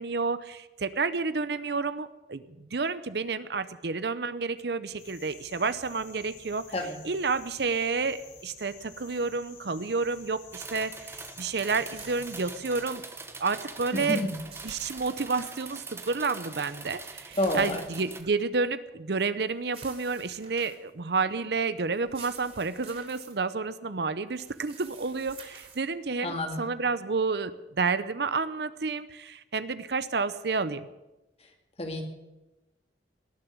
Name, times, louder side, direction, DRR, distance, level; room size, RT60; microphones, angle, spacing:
voice 1, 0.0-6.7 7.0-13.0 13.4-14.2 14.6-30.9, right 4 dB, 65° right, 14 dB, 0.7 m, -30 dB
sound 1, 5.0-12.8, left 5 dB, 70° left, 3.9 m, -51 dB
sound 2, 10.5-18.2, right 4 dB, 15° right, 1.0 m, -43 dB
sound 3, 11.9-13.0 14.0-15.6 16.8-18.4 19.6-20.9 21.9-23.3 24.3-25.8, right 5 dB, 35° right, 3.6 m, -50 dB
voice 2, 13.9-14.4 17.4-17.8 26.2-26.7 31.8-32.0, left 1 dB, 35° left, 4 dB, 2.2 m, -29 dB
19.0 x 7.0 x 9.6 m, 1.0 s
head